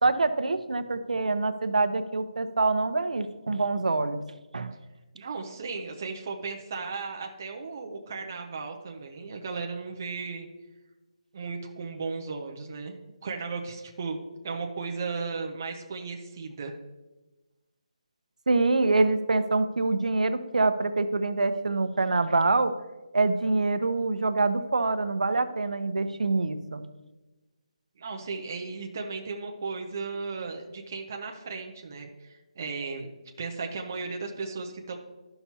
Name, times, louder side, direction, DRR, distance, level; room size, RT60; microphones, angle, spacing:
voice 1, 0.0-4.2 4.5-4.7 18.5-22.7 23.1-26.8, right 3 dB, 80° right, 10 dB, 0.7 m, -25 dB
voice 2, 5.1-10.5 11.3-12.9 13.2-14.2 14.4-16.7 28.0-33.1 33.4-34.9, right 4 dB, 20° right, 2 dB, 0.5 m, -35 dB
12.5 x 5.8 x 2.8 m, 1.1 s
hypercardioid pair, 180°, 4 cm